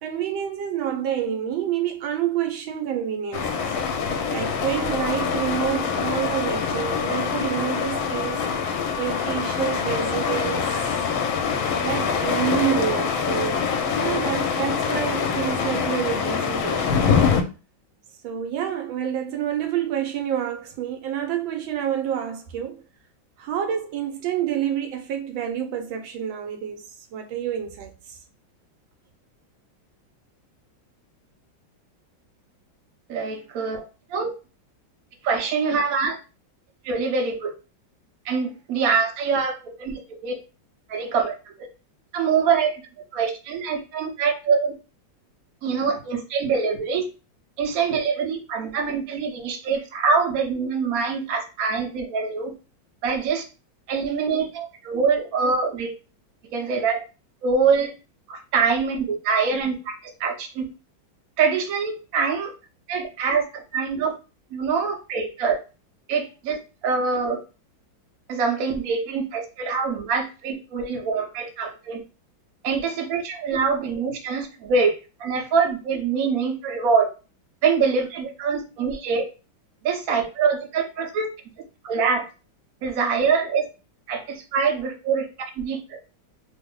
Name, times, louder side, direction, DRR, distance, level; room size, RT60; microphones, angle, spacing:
voice 1, 0.0-3.7 4.3-8.4 9.0-10.7 11.8-17.1 18.2-22.8 23.4-28.2, right 9 dB, 80° right, 1.3 m, -28 dB
sound 1, 3.3-17.4, left 6 dB, 85° left, 1.3 m, -25 dB
Wind instrument woodwind instrument, 4.8-12.4, left 6 dB, 65° left, 0.8 m, -36 dB
voice 2, 33.1-33.8 34.1-34.3 35.2-36.2 36.8-37.5 38.2-40.3 40.9-41.3 42.1-42.7 43.1-44.7 45.6-47.0 47.6-52.5 53.0-53.4 53.9-55.9 56.5-57.0 57.4-57.9 58.3-59.9 60.2-60.7 61.4-62.5 62.9-64.1 64.5-65.6 66.1-66.6 66.8-67.4 68.3-72.0 72.6-77.1 77.6-79.3 79.8-81.3 81.8-82.3 82.8-83.6 84.1-85.3 85.6-86.0, right 5 dB, 60° right, 1.0 m, -24 dB
3.3 x 2.0 x 3.6 m
omnidirectional pair, 2.1 m